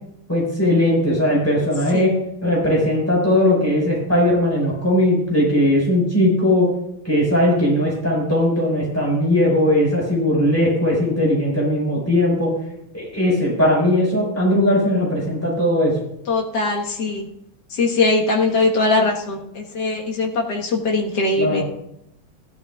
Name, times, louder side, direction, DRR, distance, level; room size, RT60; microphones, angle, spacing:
voice 1, 0.3-2.1 2.4-6.7 7.0-12.5 12.9-15.9 21.4-21.6, left 1 dB, 5° left, -4 dB, 4.9 m, -18 dB
voice 2, 16.3-17.3 17.7-21.6, left 3 dB, 55° left, 0 dB, 2.0 m, -21 dB
15.5 x 11.5 x 2.4 m, 0.78 s
omnidirectional pair, 2.3 m